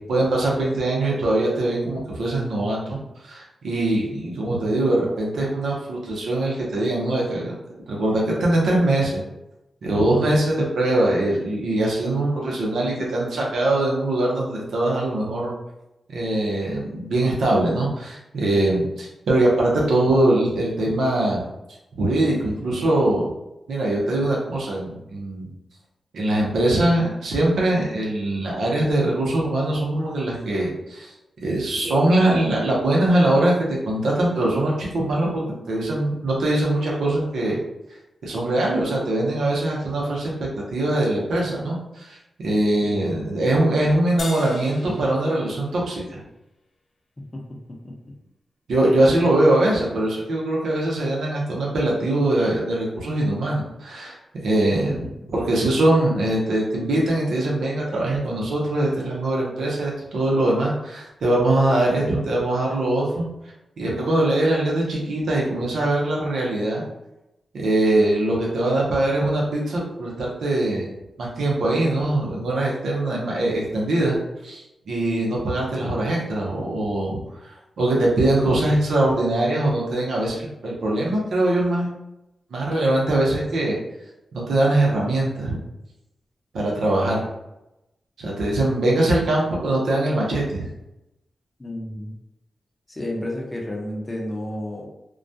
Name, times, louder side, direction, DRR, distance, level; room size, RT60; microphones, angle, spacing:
voice 1, 0.1-7.5 7.9-9.2 9.8-15.5 16.1-21.4 22.0-23.3 23.7-25.5 26.1-31.1 31.4-37.6 38.2-42.2 42.4-46.2 48.7-54.2 54.4-55.0 55.3-63.3 63.8-66.8 67.5-70.9 71.2-74.2 74.4-81.9 82.5-83.8 84.3-85.6 86.5-87.3 88.2-90.7, right 1 dB, 80° right, -3 dB, 0.7 m, -22 dB
sound 1, 44.2-46.8, left 2 dB, 60° left, 0.3 m, -40 dB
voice 2, 47.7-48.1 54.9-55.0 91.6-92.1 92.9-94.9, left 1 dB, 30° left, -1 dB, 0.7 m, -32 dB
2.2 x 2.2 x 2.6 m, 0.91 s
cardioid pair, 50°, 0 cm